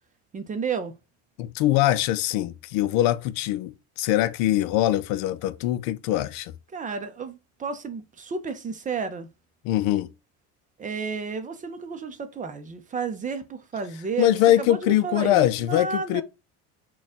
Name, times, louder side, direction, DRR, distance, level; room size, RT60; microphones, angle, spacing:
voice 1, 0.3-1.0 6.7-9.3 10.8-16.2, right 5 dB, 25° right, 0.5 m, -32 dB
voice 2, 1.4-6.5 9.6-10.1 14.2-16.2, left 13 dB, 70° left, 0.5 m, -23 dB
4.1 x 2.3 x 3.6 m
cardioid pair, 120°, 35 cm